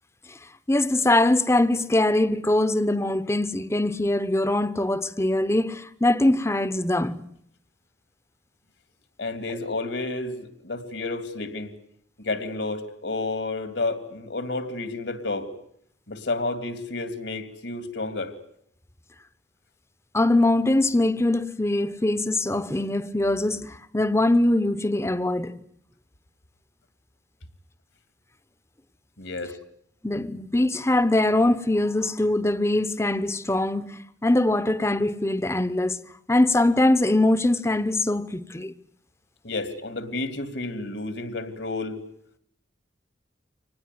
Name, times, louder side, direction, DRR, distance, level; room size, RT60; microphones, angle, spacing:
voice 1, 0.7-7.2 20.1-25.6 30.0-36.0 36.3-38.7, left 1 dB, 15° left, 1.0 m, -22 dB
voice 2, 9.2-11.7 12.2-15.5 16.1-18.3 29.2-29.6 39.4-42.0, left 2 dB, 70° left, 2.9 m, -31 dB
25.5 x 19.5 x 9.4 m
head